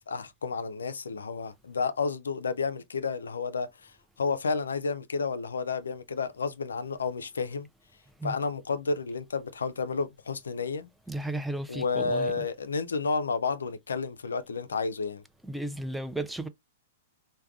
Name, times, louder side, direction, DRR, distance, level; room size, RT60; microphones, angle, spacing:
voice 1, 0.0-3.9 4.2-7.7 8.2-10.9 11.7-15.2, left 4 dB, 85° left, 0.3 m, -31 dB
voice 2, 11.1-12.3 15.5-16.5, right 1 dB, 5° right, 0.3 m, -34 dB
3.3 x 2.1 x 2.3 m
hypercardioid pair, 110°, 0 cm